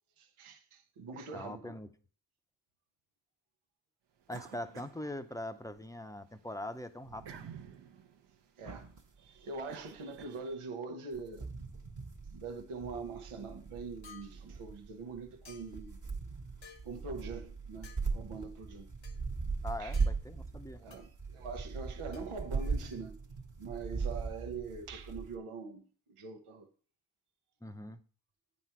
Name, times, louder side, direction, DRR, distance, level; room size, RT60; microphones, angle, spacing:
voice 1, 0.2-1.7 8.6-8.9 9.2-11.5 12.3-16.0 16.8-18.9 19.8-20.0 20.8-23.2 23.6-25.8 26.1-26.7, right 4 dB, 90° right, 0.9 m, -43 dB
voice 2, 1.3-1.9 4.3-7.5 19.6-20.8 27.6-28.0, left 1 dB, 5° left, 0.6 m, -42 dB
sound 1, 4.3-5.8 6.2-10.8, right 8 dB, 60° right, 0.8 m, -52 dB
sound 2, 8.7-9.0 10.2-10.3 11.1-25.4, right 4 dB, 40° right, 1.1 m, -39 dB
sound 3, 14.0-14.3 15.4-15.9 16.6-16.9 17.8-18.1 19.0-19.2 19.9-20.1 20.9-21.1 22.1-23.0, left 6 dB, 70° left, 1.2 m, -55 dB
9.2 x 4.2 x 4.4 m
cardioid pair, 50°, 49 cm